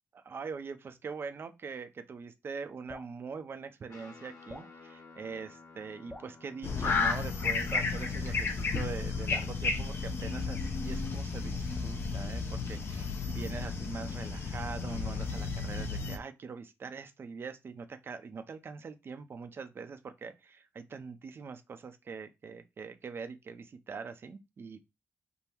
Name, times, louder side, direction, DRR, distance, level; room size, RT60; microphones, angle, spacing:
voice 1, 0.1-24.9, right 5 dB, 50° right, 0.7 m, -43 dB
Drip, 2.9-3.2 4.5-4.7 6.1-6.4 7.7-8.0 9.3-9.6, left 1 dB, 5° left, 1.0 m, -47 dB
Guitar, 3.9-11.5, left 4 dB, 80° left, 2.8 m, -56 dB
sound 1, 6.6-16.2, left 4 dB, 50° left, 0.8 m, -33 dB
5.4 x 2.2 x 4.5 m
cardioid pair, 115°, 5 cm